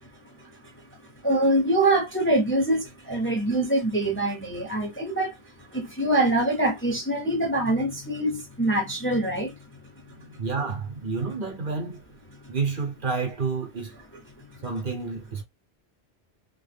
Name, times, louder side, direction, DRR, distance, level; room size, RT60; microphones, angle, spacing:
voice 1, 1.2-9.6, right 1 dB, 15° left, 0.6 m, -24 dB
voice 2, 10.1-12.0 12.5-13.9 14.6-15.4, right 4 dB, 55° right, 0.9 m, -30 dB
3.0 x 2.2 x 3.3 m
omnidirectional pair, 1.1 m